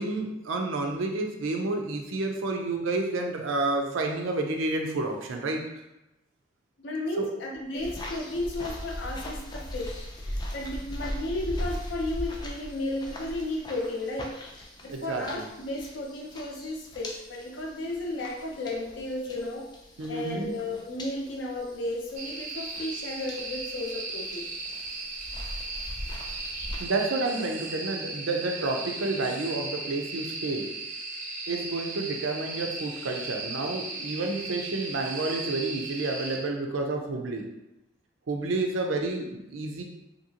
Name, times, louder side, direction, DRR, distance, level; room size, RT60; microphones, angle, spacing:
voice 1, 0.0-5.6 7.2-7.3 14.9-15.5 20.0-20.5 26.8-30.7 31.5-37.5 38.3-39.8, right 2 dB, 90° right, 3 dB, 0.5 m, -30 dB
voice 2, 6.8-19.7 20.1-24.5, left 1 dB, 70° left, 0 dB, 0.6 m, -34 dB
sound 1, 7.7-26.8, equal, 20° left, 0.3 m, -40 dB
sound 2, 22.2-36.4, right 3 dB, 40° right, 0.5 m, -37 dB
2.8 x 2.6 x 2.7 m, 0.93 s
head